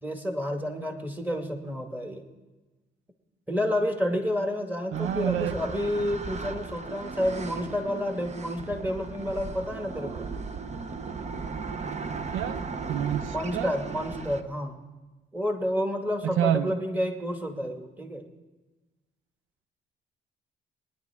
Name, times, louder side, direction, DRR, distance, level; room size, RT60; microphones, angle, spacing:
voice 1, 0.0-2.2 3.5-10.3 13.3-14.8 15.3-18.2, equal, 10° right, 3 dB, 2.0 m, -30 dB
sound 1, 4.9-14.4, right 4 dB, 35° right, 0.8 m, -36 dB
voice 2, 4.9-5.5 12.3-12.6 12.9-13.7 16.2-16.7, right 11 dB, 80° right, 15 dB, 0.4 m, -28 dB
21.5 x 10.5 x 3.6 m, 1.2 s
cardioid pair, 90°, 20 cm